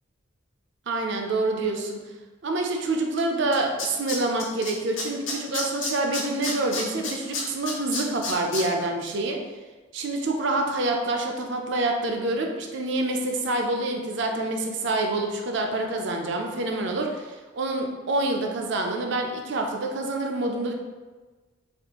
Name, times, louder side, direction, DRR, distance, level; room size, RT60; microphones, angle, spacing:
voice 1, 0.9-2.0 2.4-9.4 9.9-20.7, right 2 dB, 60° right, 2 dB, 0.5 m, -27 dB
Tools, 3.2-3.3 3.5-4.7 5.0-8.6 9.0-9.1, left 3 dB, 70° left, 0.8 m, -30 dB
4.2 x 2.4 x 2.9 m, 1.3 s
head